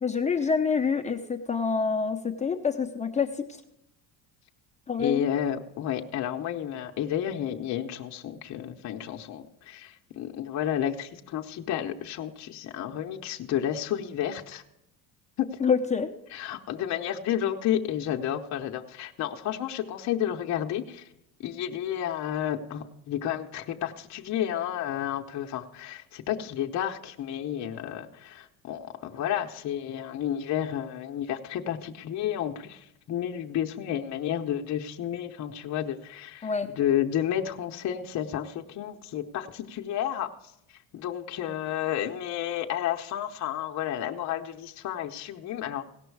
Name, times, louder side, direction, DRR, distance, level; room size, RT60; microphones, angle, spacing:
voice 1, 0.0-3.6 4.9-5.3 15.6-16.1 36.4-36.7, left 5 dB, 20° left, 4 dB, 0.7 m, -27 dB
voice 2, 5.0-14.6 15.4-15.5 16.3-21.1 21.4-40.3 40.9-45.8, left 10 dB, 50° left, 2 dB, 0.8 m, -31 dB
17.0 x 6.0 x 4.7 m, 0.82 s
cardioid pair, 115°, 36 cm